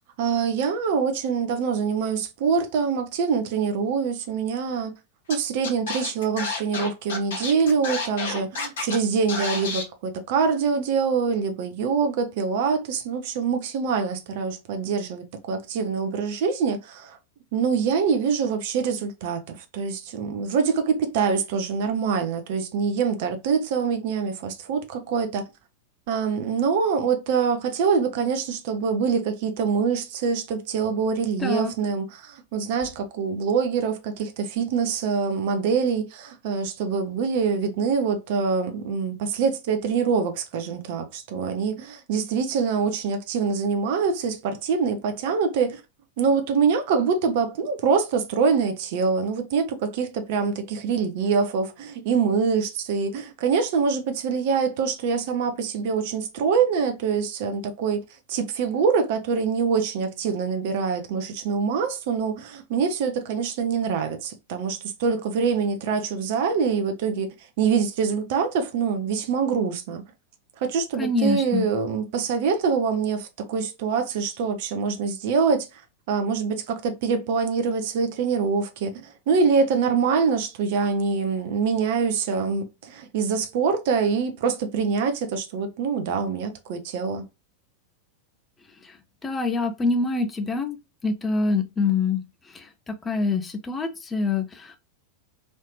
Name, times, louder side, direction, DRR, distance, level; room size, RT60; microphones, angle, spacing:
voice 1, 0.2-4.9 5.3-17.2 17.5-25.5 26.1-45.8 46.2-58.0 58.3-67.3 67.6-70.0 70.6-75.7 76.1-87.2, right 5 dB, 50° right, 0.7 m, -25 dB
Scratching (performance technique), 5.3-5.4 5.6-9.0 9.3-9.8, left 4 dB, 60° left, 1.0 m, -30 dB
voice 2, 31.4-31.7 71.0-71.7 89.2-90.8 91.0-92.2 92.9-94.8, left 3 dB, 15° left, 0.6 m, -25 dB
3.1 x 2.8 x 3.1 m
figure-of-eight pair, 90°, 0 cm